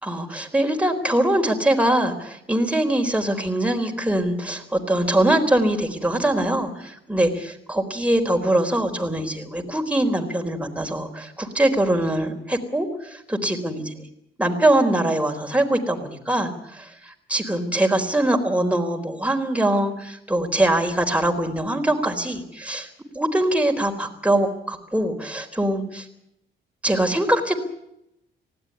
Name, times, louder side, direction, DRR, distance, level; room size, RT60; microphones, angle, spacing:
voice 1, 0.0-14.1 14.4-22.9 23.1-26.1 26.8-27.6, right 1 dB, 5° right, 4 dB, 4.0 m, -23 dB
20.0 x 16.0 x 9.9 m, 0.81 s
cardioid pair, 90°, 20 cm